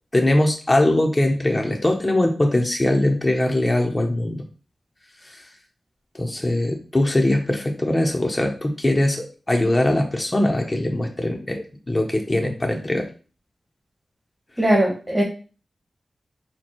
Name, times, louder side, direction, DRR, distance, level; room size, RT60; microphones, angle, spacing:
voice 1, 0.1-4.4 6.2-13.1, left 1 dB, 25° left, 2 dB, 0.8 m, -21 dB
voice 2, 14.6-15.2, right 1 dB, 15° right, -2 dB, 1.3 m, -19 dB
4.4 x 2.3 x 4.4 m, 0.36 s
cardioid pair, 70°, 0 cm